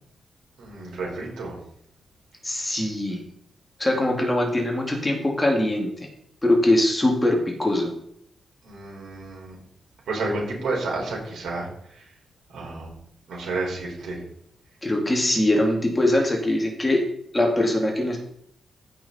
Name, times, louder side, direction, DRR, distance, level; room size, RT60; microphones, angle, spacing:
voice 1, 0.6-1.6 8.6-9.5 10.1-12.1 12.5-12.9 13.3-14.2, right 2 dB, 90° right, -2 dB, 4.8 m, -31 dB
voice 2, 2.4-3.2 3.8-5.9 6.4-7.9 14.8-17.1 17.3-18.2, left 1 dB, 15° left, 1 dB, 2.2 m, -22 dB
15.0 x 6.0 x 4.2 m, 0.68 s
wide cardioid pair, 125°, 0 cm